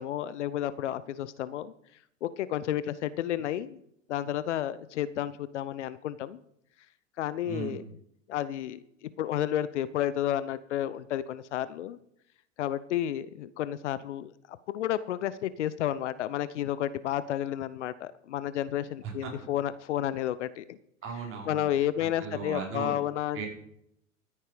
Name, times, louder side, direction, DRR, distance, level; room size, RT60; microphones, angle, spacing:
voice 1, 0.0-1.7 2.2-3.8 4.1-6.4 7.2-7.8 8.3-12.0 12.6-20.8 21.5-23.4, left 11 dB, 65° left, 16 dB, 0.9 m, -31 dB
voice 2, 7.4-7.8 19.0-19.3 21.0-23.0 23.3-23.5, right 5 dB, 35° right, 1 dB, 4.9 m, -37 dB
13.5 x 10.0 x 5.1 m, 0.72 s
figure-of-eight pair, 85°, 38 cm